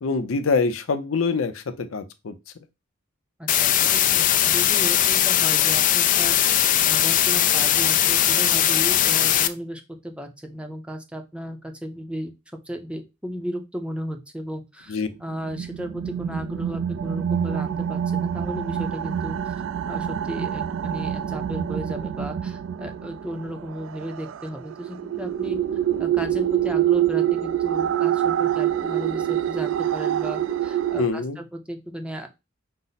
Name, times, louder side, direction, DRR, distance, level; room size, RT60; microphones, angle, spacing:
voice 1, 0.0-2.3 14.9-15.1 31.0-31.4, left 4 dB, 90° left, 0.6 m, -25 dB
voice 2, 3.4-6.4 6.9-12.3 12.7-19.6 19.9-25.6 26.0-32.3, equal, 5° right, 0.6 m, -35 dB
sound 1, 3.5-9.5, left 11 dB, 40° left, 0.3 m, -19 dB
sound 2, 15.3-31.1, right 10 dB, 70° right, 0.3 m, -26 dB
5.3 x 2.0 x 3.9 m
head